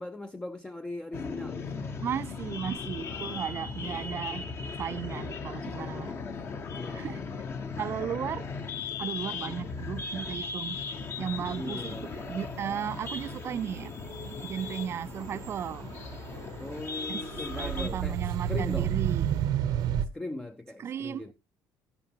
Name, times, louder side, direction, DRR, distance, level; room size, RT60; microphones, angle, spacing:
voice 1, 0.0-2.0 3.1-4.2 6.7-7.3 11.6-12.2 16.6-18.2 18.5-18.9 20.0-21.3, left 2 dB, 10° left, 0.5 m, -40 dB
sound 1, 1.1-17.9, left 5 dB, 35° left, 1.0 m, -37 dB
voice 2, 2.0-4.5 4.8-6.2 6.9-7.2 7.8-8.5 9.0-10.8 11.2-13.9 14.3-15.9 17.1-17.3 17.6-19.4 20.8-21.3, right 9 dB, 35° right, 0.4 m, -35 dB
sound 2, 3.9-4.0 6.1-7.4 7.8-8.3 8.6-20.1, right 10 dB, 70° right, 0.8 m, -34 dB
11.5 x 11.0 x 2.8 m
cardioid pair, 140°, 7 cm